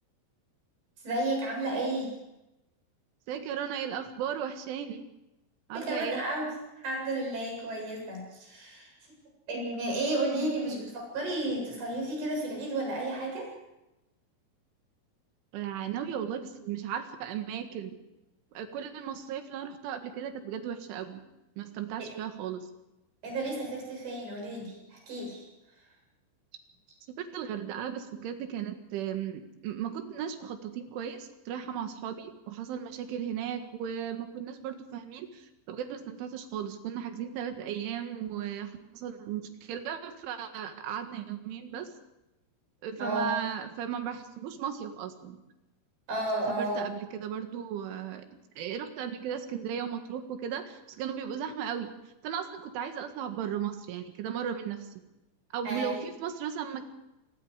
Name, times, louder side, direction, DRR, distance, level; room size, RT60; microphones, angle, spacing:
voice 1, 1.0-2.1 5.7-6.5 6.8-8.9 9.5-10.9 11.1-13.5 22.0-22.1 23.2-25.4 43.0-43.3 46.1-46.9 55.6-56.0, right 2 dB, 60° right, 0 dB, 9.9 m, -32 dB
voice 2, 3.3-5.0 5.7-6.2 10.4-10.6 15.5-18.0 18.6-21.2 21.6-22.7 27.2-41.9 42.8-45.4 46.5-48.3 48.6-51.9 52.2-54.9 55.5-56.9, right 8 dB, 80° right, 7 dB, 4.1 m, -36 dB
26.5 x 21.0 x 5.0 m, 0.95 s
omnidirectional pair, 5.5 m